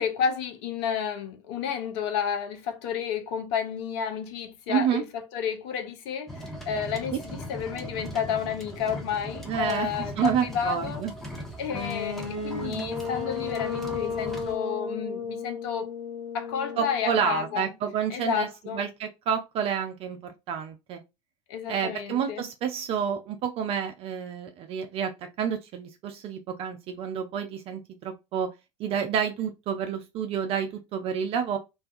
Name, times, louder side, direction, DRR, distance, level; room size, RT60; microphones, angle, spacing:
voice 1, 0.0-11.0 11.6-15.9 16.3-17.7 18.1-18.8 21.5-22.5, left 7 dB, 55° left, 0.5 m, -31 dB
voice 2, 4.7-5.0 7.1-7.2 9.5-11.1 16.8-18.5 18.7-21.0 21.7-25.1 25.4-28.5 28.8-31.6, right 8 dB, 40° right, 0.4 m, -29 dB
sound 1, 6.3-14.6, equal, ahead, 0.6 m, -39 dB
sound 2, 11.7-17.6, left 5 dB, 85° left, 0.8 m, -34 dB
2.3 x 2.2 x 2.5 m
figure-of-eight pair, 70°, 16 cm